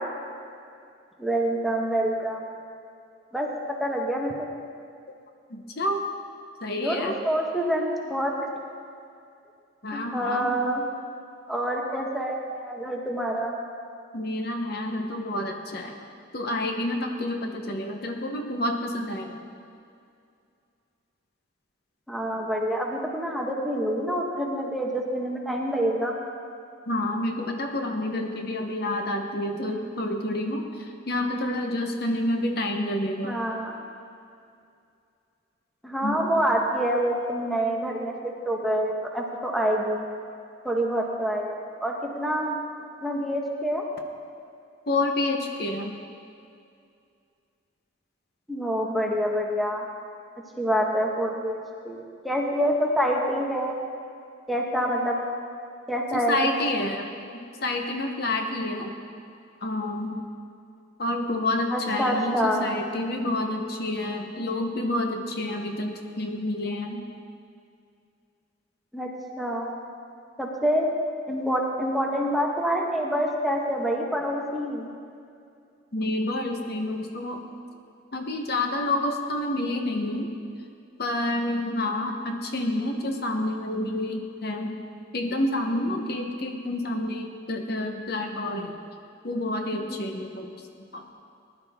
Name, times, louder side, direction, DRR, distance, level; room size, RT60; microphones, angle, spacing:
voice 1, 1.2-2.5 3.3-4.5 6.8-8.3 9.9-10.8 11.5-13.5 22.1-26.1 33.2-33.8 35.8-40.1 40.6-42.6 43.0-43.8 48.5-49.8 50.6-53.8 54.5-55.2 55.9-56.4 61.7-62.7 68.9-69.1 69.4-69.7 70.4-70.9 71.3-74.9 89.7-90.0, equal, ahead, -1 dB, 1.2 m, -27 dB
voice 2, 5.5-6.0 6.6-7.2 9.8-10.6 14.1-16.0 16.3-19.4 26.9-33.4 36.0-36.3 44.9-46.0 56.1-59.0 59.6-60.2 61.0-67.0 75.9-77.4 78.1-80.4 81.0-84.8 85.1-88.8 89.2-90.5 90.9-91.1, left 1 dB, 50° left, 3 dB, 1.0 m, -29 dB
20.0 x 11.0 x 3.6 m, 2.4 s
head